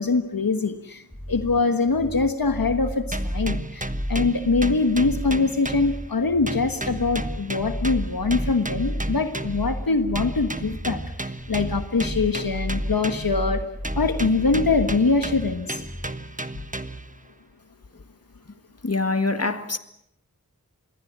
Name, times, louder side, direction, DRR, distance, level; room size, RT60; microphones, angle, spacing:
voice 1, 0.0-13.6 13.9-15.8, left 3 dB, 70° left, 1.4 m, -23 dB
sound 1, 1.1-16.1, equal, 5° left, 1.8 m, -32 dB
sound 2, 3.1-6.2 6.5-9.7 10.2-13.5 13.8-17.2, right 2 dB, 20° right, 1.4 m, -34 dB
voice 2, 18.8-19.8, left 3 dB, 45° left, 1.9 m, -24 dB
27.5 x 22.0 x 7.4 m
wide cardioid pair, 45°, 36 cm